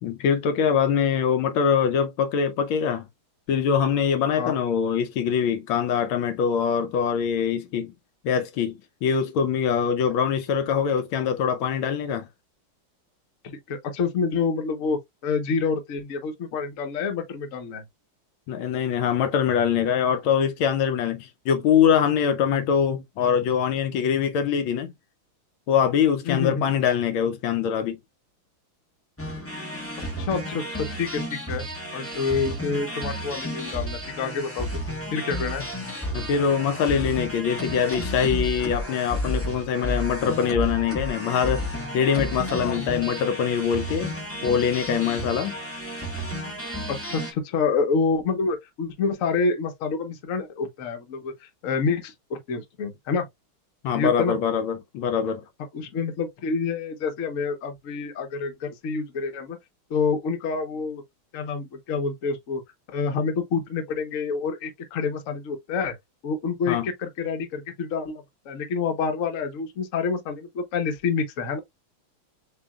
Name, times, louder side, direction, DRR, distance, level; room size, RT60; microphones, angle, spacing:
voice 1, 0.0-3.1 3.5-7.9 8.2-12.3 18.5-24.9 25.7-28.0 36.1-41.6 41.9-44.1 44.4-45.6 53.8-55.4 66.7-66.9, left 7 dB, 75° left, 1.4 m, -23 dB
voice 2, 13.4-17.9 26.2-26.7 30.2-31.7 31.9-34.8 35.1-35.6 42.6-42.8 46.9-53.2 53.9-54.4 55.7-59.6 59.9-61.0 61.3-62.6 62.9-66.0 66.2-71.6, left 5 dB, 50° left, 1.1 m, -28 dB
sound 1, 29.2-47.3, equal, 10° left, 0.6 m, -32 dB
6.8 x 2.8 x 2.3 m
omnidirectional pair, 2.3 m